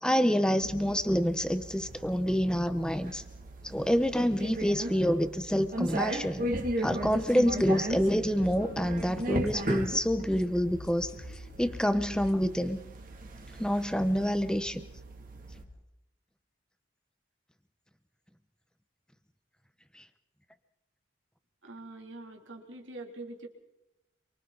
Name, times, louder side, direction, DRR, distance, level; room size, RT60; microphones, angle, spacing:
voice 1, 0.0-3.2 3.6-11.1 11.6-12.8 13.6-14.8, equal, 5° left, 10 dB, 1.0 m, -27 dB
sound 1, 0.6-15.6, right 1 dB, 45° right, 2.6 m, -37 dB
sound 2, 6.9-12.4, left 1 dB, 55° left, 2.0 m, -45 dB
voice 2, 21.6-23.5, right 2 dB, 80° right, 1 dB, 3.2 m, -44 dB
28.0 x 24.0 x 4.1 m, 0.96 s
head